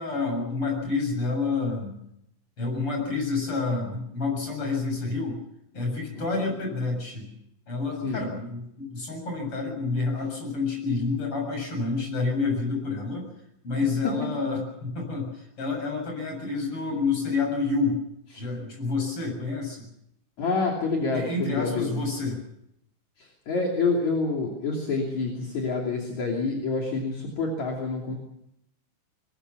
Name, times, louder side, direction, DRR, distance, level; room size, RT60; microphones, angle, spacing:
voice 1, 0.0-2.0 2.6-5.4 5.7-7.3 7.7-13.3 13.6-18.0 18.3-19.8 21.1-22.4, left 3 dB, 40° left, 2 dB, 8.2 m, -28 dB
voice 2, 20.4-21.9 23.2-28.2, left 3 dB, 60° left, 0 dB, 4.2 m, -27 dB
21.5 x 21.0 x 7.1 m, 0.78 s
omnidirectional pair, 3.8 m